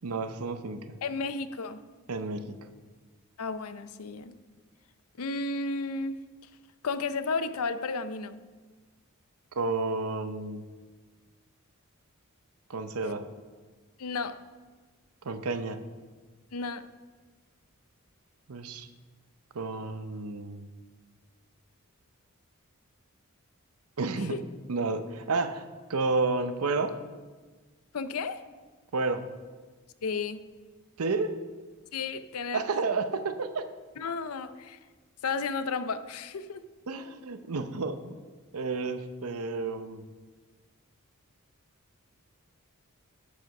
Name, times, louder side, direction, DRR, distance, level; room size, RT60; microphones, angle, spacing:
voice 1, 0.0-1.0 2.1-2.6 9.6-10.6 12.7-13.2 15.2-15.8 18.5-18.9 19.5-20.7 24.0-24.4 24.7-26.9 28.9-29.2 31.0-31.3 32.5-33.7 36.9-38.2 38.5-40.0, right 3 dB, 85° right, 10 dB, 0.7 m, -31 dB
voice 2, 1.0-1.8 3.4-4.3 5.2-6.2 6.8-8.4 14.0-14.4 16.5-16.8 24.1-24.4 27.9-28.4 30.0-30.4 31.9-32.6 34.0-34.8 35.2-36.6, left 4 dB, 80° left, 13 dB, 0.5 m, -33 dB
12.0 x 4.9 x 5.3 m, 1.4 s
head